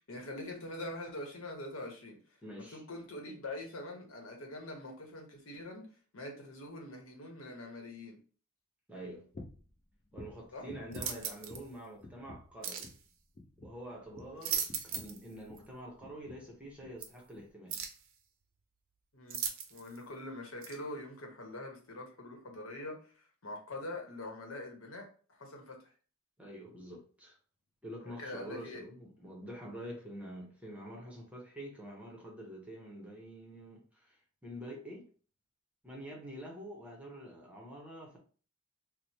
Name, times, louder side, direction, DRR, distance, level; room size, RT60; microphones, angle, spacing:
voice 1, 0.1-2.2 2.6-5.9 6.1-8.2 10.5-10.7 14.3-14.5 19.1-19.4 19.7-25.8 28.0-28.8, left 1 dB, 75° left, 1.0 m, -44 dB
voice 2, 2.4-2.8 8.9-9.3 10.1-12.9 13.6-17.8 26.4-27.3 27.8-35.1 35.8-38.2, equal, 5° right, 0.8 m, -47 dB
sound 1, 9.3-9.7 10.1-11.8 12.0-12.6 12.8-13.1 13.4-15.7 16.0-16.5 16.8-17.0 17.4-17.5, left 2 dB, 35° left, 0.5 m, -51 dB
sound 2, 10.9-11.6 12.6-12.9 14.2-15.2 15.6-15.7 17.0-17.1 17.7-18.0 19.3-20.0 20.6-20.8, right 7 dB, 70° right, 0.6 m, -37 dB
3.0 x 2.1 x 4.0 m
head